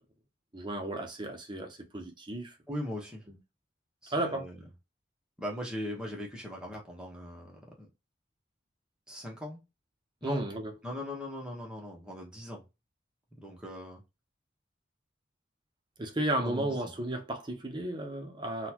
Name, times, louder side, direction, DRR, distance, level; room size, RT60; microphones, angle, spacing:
voice 1, 0.5-2.5 4.1-4.5 10.2-10.7 16.0-18.7, right 1 dB, 25° right, 0.8 m, -33 dB
voice 2, 2.7-3.3 4.0-4.6 5.4-7.9 9.1-9.6 10.2-10.5 10.8-12.6 13.4-14.0 16.4-16.9, left 1 dB, 5° right, 1.1 m, -39 dB
3.9 x 2.3 x 2.9 m
head